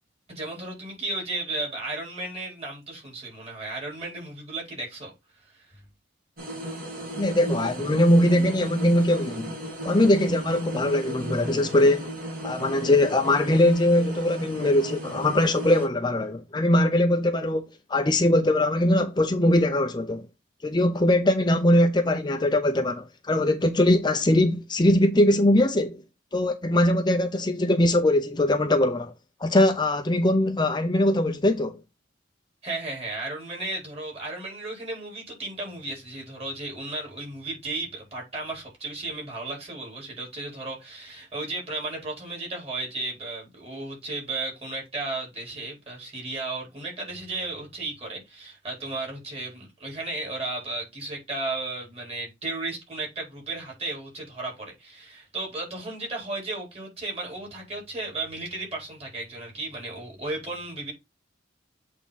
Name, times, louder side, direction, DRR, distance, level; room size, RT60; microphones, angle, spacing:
voice 1, 0.3-5.1 5.5-5.8 32.6-60.9, right 2 dB, 35° right, 4.3 m, -34 dB
sound 1, 6.4-15.9, equal, 50° right, 3.1 m, -36 dB
voice 2, 7.2-9.5 9.8-12.1 12.4-20.3 20.6-26.0 26.3-29.1 29.4-31.8, left 1 dB, 25° left, 0.6 m, -21 dB
8.2 x 3.7 x 4.0 m
head